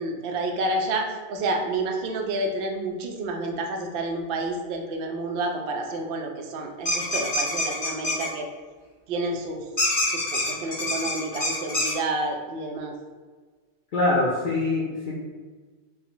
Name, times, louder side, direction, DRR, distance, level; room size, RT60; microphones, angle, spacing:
voice 1, 0.0-8.5 9.1-9.6 10.1-12.9, right 2 dB, 70° right, 3 dB, 0.5 m, -29 dB
sound 1, 6.8-8.3 9.8-11.9, left 1 dB, 35° left, 1.1 m, -25 dB
voice 2, 13.9-15.2, left 2 dB, 70° left, -4 dB, 0.4 m, -24 dB
4.1 x 2.1 x 3.8 m, 1.4 s
omnidirectional pair, 1.4 m